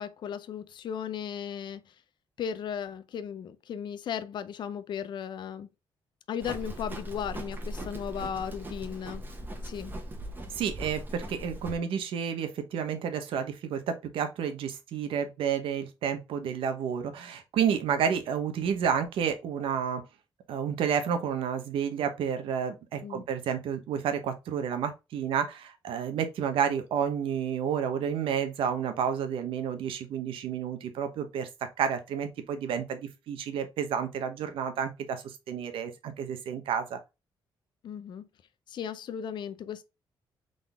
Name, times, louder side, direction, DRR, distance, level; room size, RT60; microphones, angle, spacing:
voice 1, 0.0-1.8 2.4-5.7 6.3-9.2 9.6-9.9 23.0-23.2 37.8-38.3 38.7-39.8, left 8 dB, 60° left, 0.5 m, -36 dB
Livestock farm animals working animals, 6.4-11.7, right 1 dB, 20° right, 1.0 m, -39 dB
voice 2, 10.5-20.0 20.5-31.5 31.8-37.0, right 7 dB, 85° right, 0.9 m, -30 dB
3.9 x 3.8 x 3.4 m
cardioid pair, 135°, 9 cm